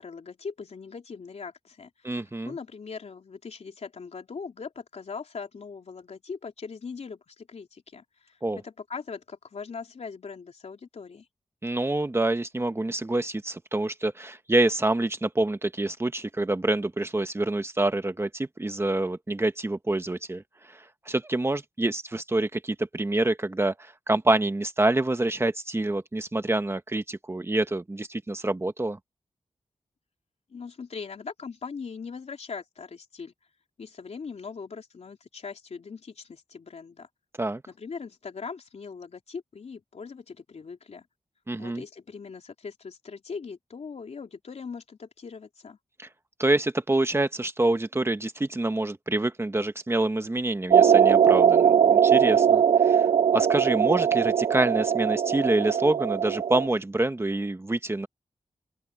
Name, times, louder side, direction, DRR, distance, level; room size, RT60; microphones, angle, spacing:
voice 1, 0.0-11.3 30.5-33.3 33.8-37.1 37.7-41.1 41.6-45.8, left 5 dB, 65° left, 3.5 m, -40 dB
voice 2, 2.0-2.5 8.4-8.6 11.6-20.4 20.7-29.0 37.4-37.6 41.5-41.8 46.0-46.1 46.4-53.1 53.3-58.1, right 2 dB, 20° right, 1.2 m, -26 dB
sound 1, 50.7-56.7, right 8 dB, 60° right, 0.4 m, -20 dB
open air
wide cardioid pair, 110°, 12 cm